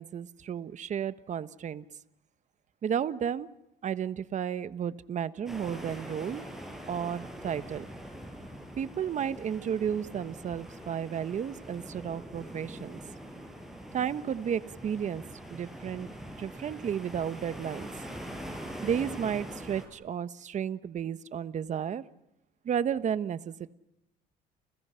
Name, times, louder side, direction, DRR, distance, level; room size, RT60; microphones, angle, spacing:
voice 1, 0.0-1.8 2.8-3.5 3.8-6.4 6.8-7.8 8.7-13.0 13.9-15.2 15.5-16.1 16.4-17.9 18.8-22.0 22.6-23.7, right 8 dB, 45° right, 14 dB, 1.1 m, -33 dB
sound 1, 5.5-19.9, equal, ahead, 7.0 m, -43 dB
30.0 x 30.0 x 5.8 m, 0.86 s
cardioid pair, 110°, 17 cm